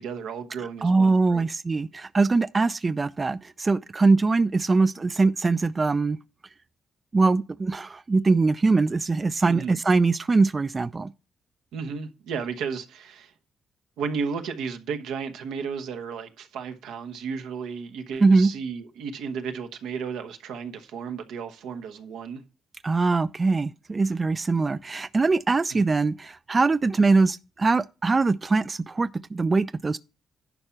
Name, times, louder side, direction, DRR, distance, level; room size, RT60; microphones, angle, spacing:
voice 1, 0.0-1.4 9.5-9.8 11.7-13.3 14.0-22.4 25.7-25.9, right 6 dB, 90° right, 1.0 m, -33 dB
voice 2, 0.8-6.2 7.1-11.1 18.2-18.5 22.8-30.0, right 3 dB, 35° right, 0.3 m, -22 dB
11.0 x 4.4 x 5.8 m
cardioid pair, 70°, 0 cm